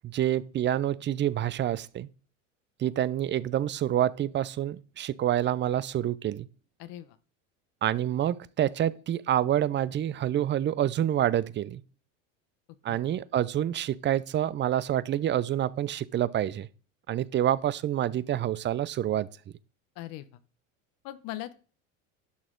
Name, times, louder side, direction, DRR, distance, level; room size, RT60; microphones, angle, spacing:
voice 1, 0.0-2.1 2.8-6.5 7.8-11.8 12.8-16.7 17.1-19.3, right 11 dB, 30° right, 0.5 m, -27 dB
voice 2, 6.8-7.2 12.9-13.0 20.0-20.3 21.0-21.5, left 15 dB, 60° left, 0.8 m, -39 dB
11.5 x 6.1 x 3.8 m
hypercardioid pair, 90°, 39 cm